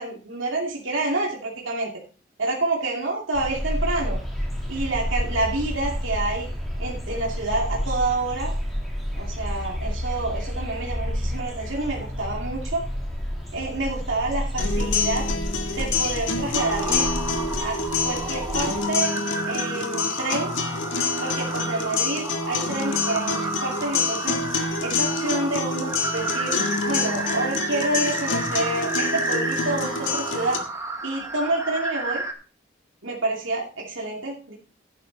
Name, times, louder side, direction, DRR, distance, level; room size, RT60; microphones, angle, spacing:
voice 1, 0.0-1.9 2.4-4.2 4.7-6.5 6.8-8.5 9.2-12.8 13.5-15.3 15.7-17.1 17.6-19.1 19.4-20.5 21.2-24.4 24.8-26.5 26.9-30.6 31.0-32.2 33.0-34.5, right 2 dB, 85° right, -2 dB, 2.6 m, -28 dB
sound 1, 3.3-18.8, equal, ahead, 3.1 m, -30 dB
sound 2, 14.6-30.6, left 4 dB, 85° left, 1.7 m, -27 dB
sound 3, 16.5-32.3, right 2 dB, 15° right, 1.4 m, -32 dB
12.0 x 10.0 x 4.0 m, 0.37 s
head